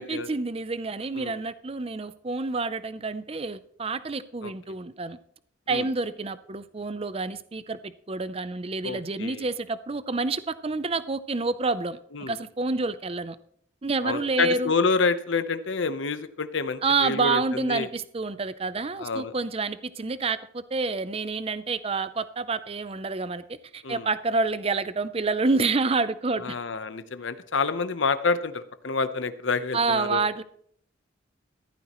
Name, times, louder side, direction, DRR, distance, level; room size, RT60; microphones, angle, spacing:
voice 1, 0.0-5.2 5.7-12.0 12.3-13.4 13.8-14.7 16.8-26.6 29.7-30.4, right 3 dB, 30° right, 14 dB, 0.6 m, -28 dB
voice 2, 8.8-9.5 12.1-12.4 14.0-17.9 19.0-19.3 23.8-24.1 26.4-30.2, left 4 dB, 75° left, 11 dB, 0.9 m, -28 dB
15.5 x 14.0 x 3.1 m, 0.64 s
head